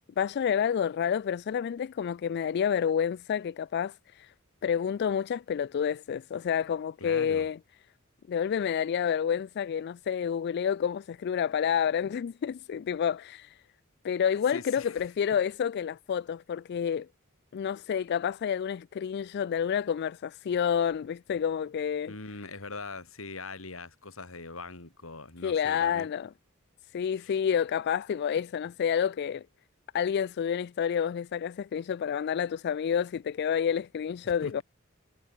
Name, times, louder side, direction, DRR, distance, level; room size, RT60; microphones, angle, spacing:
voice 1, 0.2-4.3 4.6-7.6 8.3-13.6 14.0-17.1 17.5-22.1 25.4-26.3 26.9-29.4 29.9-34.6, left 8 dB, 55° left, 0.3 m, -29 dB
voice 2, 7.0-7.5 14.5-15.0 22.1-26.1 27.2-27.3 34.4-34.6, left 3 dB, 75° left, 3.4 m, -42 dB
head